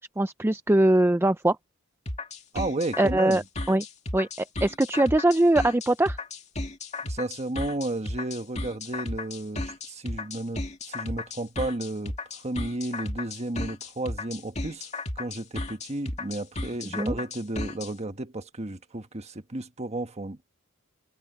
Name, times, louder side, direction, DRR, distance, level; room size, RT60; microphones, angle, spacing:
voice 1, 0.2-1.6 3.0-3.8 4.1-4.3 4.6-6.2 16.9-17.2, right 1 dB, 10° right, 0.5 m, -22 dB
sound 1, 2.1-17.9, left 2 dB, 35° left, 2.2 m, -34 dB
voice 2, 2.5-3.4 7.0-14.9 15.1-20.4, right 2 dB, 30° right, 1.4 m, -33 dB
head